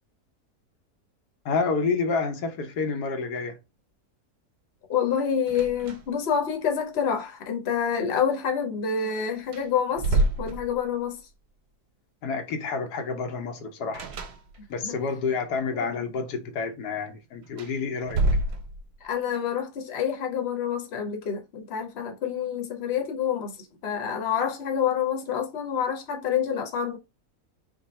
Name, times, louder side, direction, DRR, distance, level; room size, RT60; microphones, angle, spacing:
voice 1, 1.4-3.6 12.2-14.1 14.7-18.2, left 4 dB, 85° left, 1.3 m, -29 dB
voice 2, 4.9-11.2 14.8-14.9 15.7-16.1 19.0-27.0, left 7 dB, 50° left, 1.0 m, -28 dB
sound 1, 5.5-6.3 6.6-6.7 8.9-9.0 9.4-11.2 13.9-14.9 17.4-19.1, right 2 dB, 80° right, 1.3 m, -28 dB
3.7 x 2.3 x 4.1 m
omnidirectional pair, 1.6 m